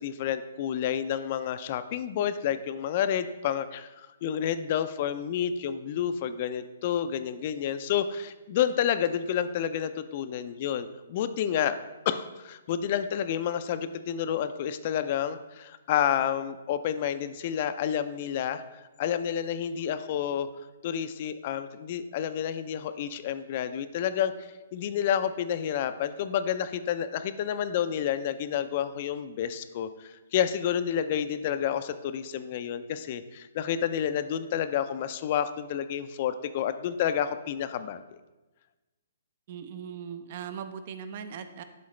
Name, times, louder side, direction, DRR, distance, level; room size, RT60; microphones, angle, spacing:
voice 1, 0.0-11.8 12.1-20.5 20.8-24.3 24.7-38.0, left 9 dB, 40° left, 11 dB, 0.4 m, -29 dB
voice 2, 39.5-41.6, right 7 dB, 45° right, 10 dB, 0.6 m, -39 dB
11.0 x 3.9 x 3.2 m, 1.1 s
hypercardioid pair, 155°, 0 cm